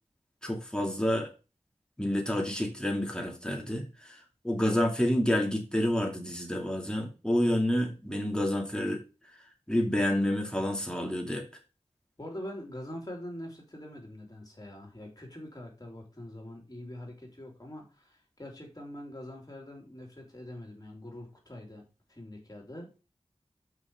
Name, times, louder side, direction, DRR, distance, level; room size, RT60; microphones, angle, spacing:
voice 1, 0.4-1.3 2.0-9.0 9.7-11.5, left 1 dB, 5° left, 2.5 m, -29 dB
voice 2, 12.2-21.8 22.1-22.9, left 1 dB, 35° left, 3.5 m, -44 dB
6.0 x 5.9 x 6.5 m
wide cardioid pair, 70°, 11 cm